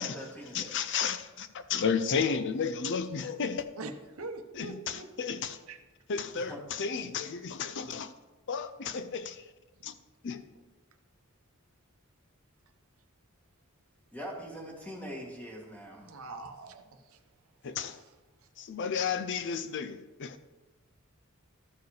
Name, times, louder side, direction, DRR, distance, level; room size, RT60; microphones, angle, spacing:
voice 1, 0.0-0.8 6.3-6.6 14.1-16.1, equal, 5° left, 1.8 m, -42 dB
voice 2, 0.5-3.7 4.5-5.6 6.1-8.1 8.5-9.4 9.8-9.9 10.2-10.5 17.6-18.0 18.6-20.4, left 6 dB, 60° left, 0.5 m, -33 dB
voice 3, 4.2-5.4 5.7-5.8 16.0-17.0, right 3 dB, 75° right, 0.8 m, -42 dB
13.0 x 4.7 x 4.8 m
head